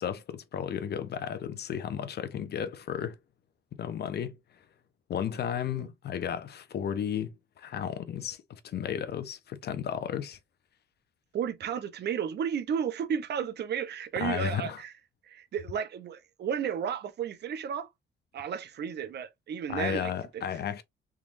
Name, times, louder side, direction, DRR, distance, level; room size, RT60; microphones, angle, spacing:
voice 1, 0.0-3.2 3.7-4.4 5.1-10.4 14.2-14.8 19.7-20.8, left 8 dB, 55° left, 0.7 m, -33 dB
voice 2, 11.3-14.9 15.2-17.9 18.3-20.4, right 8 dB, 55° right, 0.7 m, -33 dB
3.7 x 3.0 x 2.5 m
cardioid pair, 90°, 20 cm